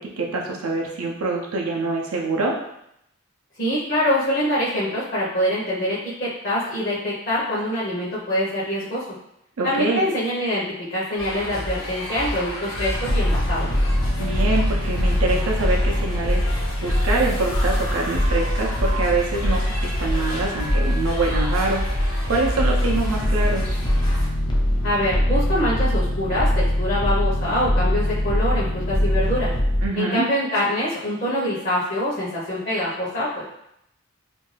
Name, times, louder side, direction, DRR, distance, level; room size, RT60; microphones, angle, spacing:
voice 1, 0.0-2.5 9.6-10.0 14.2-23.8 29.8-30.3, right 3 dB, 85° right, -1 dB, 0.5 m, -25 dB
voice 2, 3.6-9.0 9.6-10.6 10.9-13.7 24.8-29.5 29.9-33.4, equal, 45° left, -9 dB, 0.7 m, -24 dB
sound 1, 11.2-24.3, equal, 75° left, 1.1 m, -31 dB
sound 2, 12.9-29.9, left 1 dB, 20° left, 0.3 m, -23 dB
2.5 x 2.2 x 3.2 m, 0.78 s
head